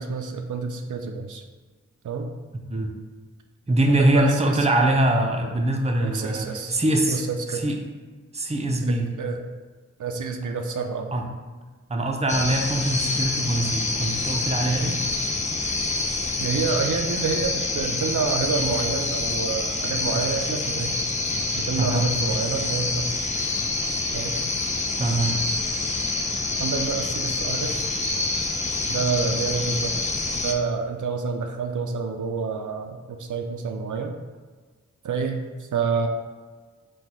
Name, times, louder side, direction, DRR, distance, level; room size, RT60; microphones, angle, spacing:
voice 1, 0.0-1.4 2.0-2.3 3.9-4.7 6.0-6.7 7.1-7.6 8.8-9.5 10.0-11.1 14.8-15.0 16.4-21.0 21.5-23.3 24.1-24.4 26.6-27.9 28.9-30.0 30.3-34.1 35.0-36.1, right 5 dB, 80° right, 4 dB, 0.5 m, -28 dB
voice 2, 3.7-7.2 7.5-7.8 8.3-9.1 11.1-11.2 11.9-15.0 21.8-22.1 25.0-25.4, right 1 dB, 20° right, 2 dB, 0.6 m, -23 dB
sound 1, 12.3-30.5, left 3 dB, 25° left, 0.5 m, -27 dB
4.0 x 2.3 x 4.6 m, 1.4 s
wide cardioid pair, 50°, 30 cm